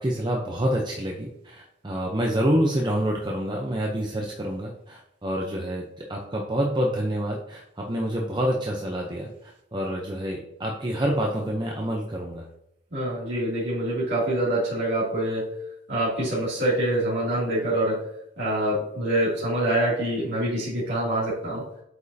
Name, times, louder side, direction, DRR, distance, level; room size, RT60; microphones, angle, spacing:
voice 1, 0.0-12.5, equal, 20° right, 0 dB, 0.7 m, -27 dB
voice 2, 12.9-15.6 15.9-18.1 18.4-21.6, right 1 dB, 55° right, -10 dB, 2.7 m, -25 dB
7.9 x 5.3 x 2.8 m, 0.80 s
head